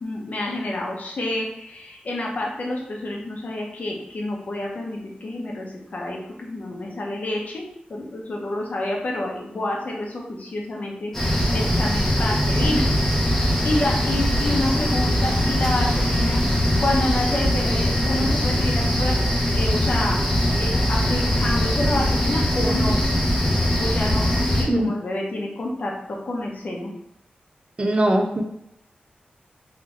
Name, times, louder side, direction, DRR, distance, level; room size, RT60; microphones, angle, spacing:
voice 1, 0.0-12.9 13.6-16.4 16.8-19.1 19.5-20.3 20.6-23.0 23.8-26.9, left 1 dB, 55° left, -1 dB, 0.9 m, -28 dB
sound 1, 11.1-24.6, equal, 10° left, 1.1 m, -21 dB
voice 2, 27.8-28.4, right 1 dB, 35° right, 3 dB, 0.6 m, -20 dB
3.3 x 3.0 x 3.2 m, 0.79 s
wide cardioid pair, 110°, 3 cm